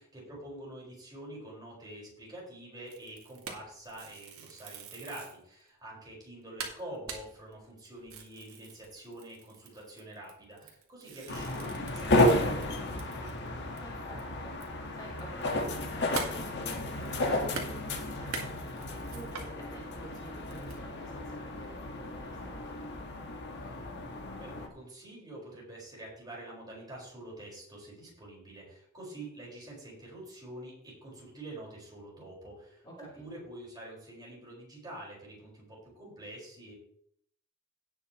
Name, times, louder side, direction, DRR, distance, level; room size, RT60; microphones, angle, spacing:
voice 1, 0.1-13.3 23.6-23.8 24.4-36.7, right 1 dB, 20° right, -4 dB, 4.9 m, -46 dB
sound 1, 2.9-5.4 5.9-6.0 6.3-6.4 6.6-13.5 13.8-13.9 14.2-19.5 20.0-20.8, right 4 dB, 75° right, 2.0 m, -44 dB
sound 2, 11.3-24.7, left 1 dB, 55° left, 1.6 m, -32 dB
voice 2, 13.8-22.8 32.8-33.2, right 1 dB, 20° left, -5 dB, 3.4 m, -50 dB
17.5 x 6.9 x 3.1 m, 0.66 s
head